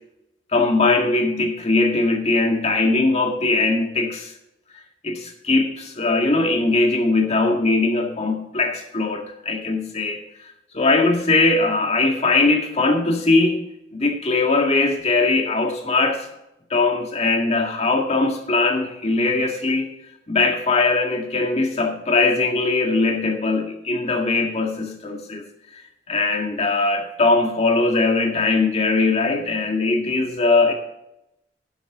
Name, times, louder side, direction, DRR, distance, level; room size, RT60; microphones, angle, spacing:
voice 1, 0.5-4.3 5.0-10.2 10.7-13.6 13.9-16.3 16.7-19.9 20.3-25.4 25.7-25.8 26.1-30.7, left 3 dB, 35° left, 2 dB, 1.9 m, -20 dB
11.5 x 10.0 x 3.8 m, 0.87 s
head